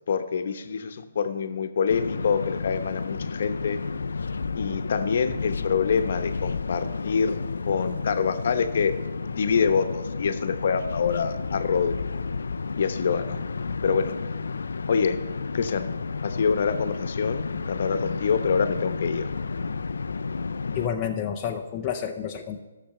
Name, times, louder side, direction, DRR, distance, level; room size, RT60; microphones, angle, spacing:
voice 1, 0.1-3.8 4.5-8.9 9.4-11.9 12.8-13.4 13.8-14.1 14.9-15.2 15.5-15.9 16.2-19.3, left 6 dB, 50° left, 9 dB, 0.9 m, -26 dB
sound 1, 1.9-20.9, left 4 dB, 90° left, 0.4 m, -31 dB
voice 2, 20.7-22.6, left 8 dB, 15° left, 1 dB, 0.6 m, -29 dB
13.5 x 6.7 x 6.7 m, 1.1 s
hypercardioid pair, 170°, 0 cm